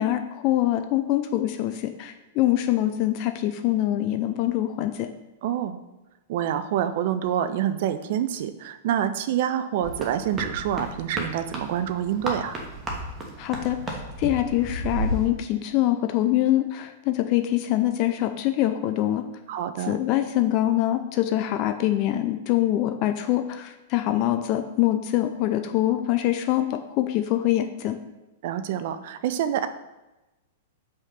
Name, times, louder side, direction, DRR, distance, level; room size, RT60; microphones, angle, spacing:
voice 1, 0.0-5.1 13.4-19.2 19.9-28.0, left 13 dB, 40° left, 8 dB, 0.5 m, -24 dB
voice 2, 5.4-5.8 6.3-12.5 19.5-20.0 28.4-29.7, right 10 dB, 50° right, 10 dB, 0.5 m, -27 dB
sound 1, 9.8-15.3, right 1 dB, 15° right, 1.3 m, -33 dB
5.4 x 3.5 x 5.7 m, 1.0 s
figure-of-eight pair, 100°, 0 cm